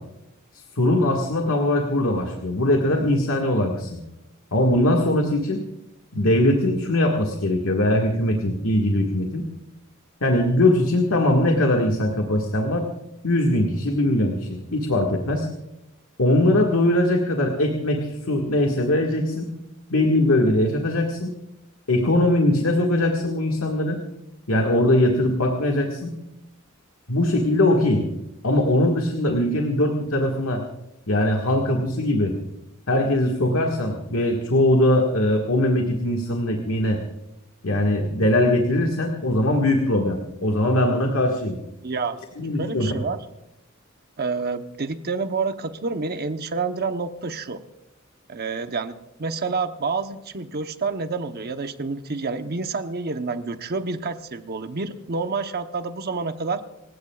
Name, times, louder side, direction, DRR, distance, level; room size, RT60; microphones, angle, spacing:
voice 1, 0.8-4.0 4.5-5.6 6.1-9.5 10.2-12.9 13.2-15.5 16.2-19.5 19.9-21.3 21.9-24.0 24.5-26.1 27.1-28.0 28.4-30.6 31.1-32.3 32.9-37.0 37.6-41.6 42.4-43.0, left 1 dB, 80° left, 1 dB, 1.8 m, -21 dB
voice 2, 41.8-43.2 44.2-47.6 48.3-56.6, right 4 dB, 50° right, 8 dB, 0.9 m, -28 dB
27.5 x 16.0 x 2.4 m, 0.88 s
head